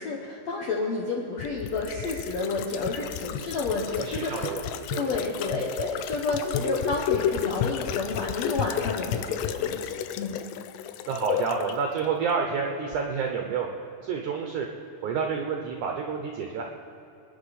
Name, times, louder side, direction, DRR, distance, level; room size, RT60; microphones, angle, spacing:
voice 1, 0.0-4.6 4.9-10.4, left 3 dB, 70° left, -2 dB, 1.6 m, -30 dB
sound 1, 1.4-11.8 12.0-12.1, left 9 dB, 90° left, 2.7 m, -32 dB
voice 2, 3.9-5.2 11.1-13.7 14.0-14.7 15.0-16.6, right 6 dB, 75° right, 2 dB, 1.8 m, -29 dB
26.0 x 10.0 x 4.2 m, 2.9 s
omnidirectional pair, 4.7 m